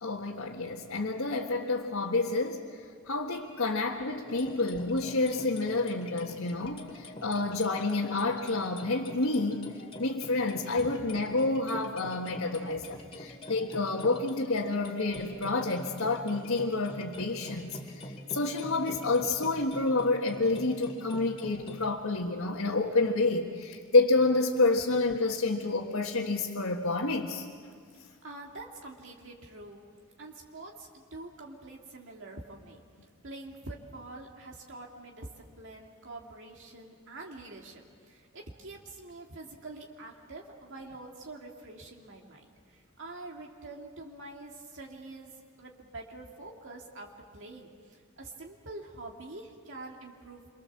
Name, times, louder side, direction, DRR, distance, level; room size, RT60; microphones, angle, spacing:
voice 1, 0.0-2.6 3.1-9.6 10.0-18.0 18.3-27.5, left 3 dB, 80° left, -2 dB, 1.7 m, -29 dB
sound 1, 4.3-21.9, left 1 dB, 30° left, 2.3 m, -45 dB
voice 2, 28.2-29.8 30.2-32.8 33.2-45.3 45.6-47.1 47.3-50.4, right 2 dB, 60° right, -1 dB, 2.4 m, -46 dB
27.5 x 24.0 x 7.3 m, 2.1 s
head